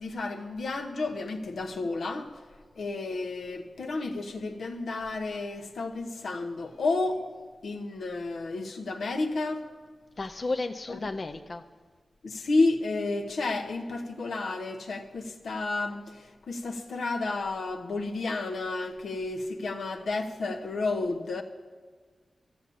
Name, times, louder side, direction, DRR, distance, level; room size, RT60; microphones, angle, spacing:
voice 1, 0.0-2.3 2.8-7.2 7.6-9.7 10.9-11.0 12.2-21.4, left 3 dB, 85° left, 4 dB, 1.1 m, -31 dB
voice 2, 10.2-11.6, left 3 dB, 40° left, 6 dB, 0.5 m, -33 dB
13.5 x 7.3 x 8.5 m, 1.4 s
wide cardioid pair, 105°, 0 cm